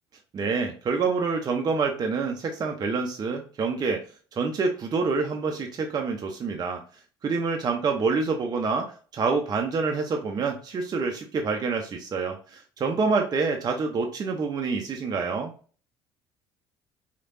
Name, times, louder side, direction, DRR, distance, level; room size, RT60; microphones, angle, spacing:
voice 1, 0.3-4.0 4.3-6.8 7.2-15.5, right 4 dB, 30° right, 2 dB, 0.5 m, -27 dB
3.2 x 2.8 x 2.5 m, 0.40 s
figure-of-eight pair, 55°, 12 cm